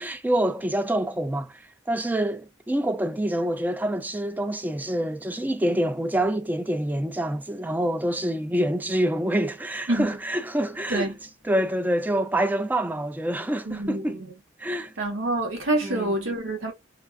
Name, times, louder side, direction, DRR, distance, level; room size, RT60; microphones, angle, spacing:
voice 1, 0.0-1.6 1.9-11.1 11.4-14.2 14.6-14.9 15.8-16.1, right 1 dB, 10° right, 0.3 m, -26 dB
voice 2, 13.7-14.0 15.0-16.7, right 2 dB, 80° right, 1.1 m, -26 dB
2.6 x 2.3 x 2.3 m
head